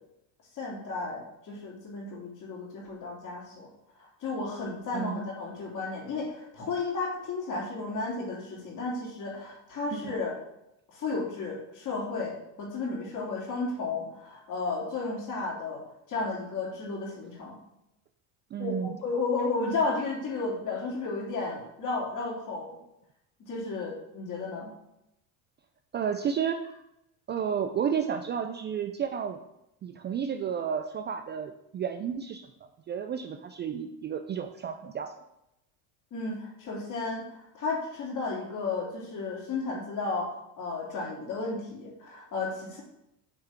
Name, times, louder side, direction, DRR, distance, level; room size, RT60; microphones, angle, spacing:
voice 1, 0.5-3.7 4.0-10.4 10.9-15.8 16.1-17.6 18.6-22.8 23.4-24.7 36.1-42.8, left 3 dB, 50° left, -2 dB, 2.7 m, -33 dB
voice 2, 4.9-5.3 9.9-10.1 18.5-18.9 25.9-26.8 27.3-29.4 29.8-32.5 32.9-35.1, right 7 dB, 30° right, 8 dB, 0.4 m, -32 dB
6.6 x 3.6 x 5.8 m, 0.86 s
supercardioid pair, 100°, 40 cm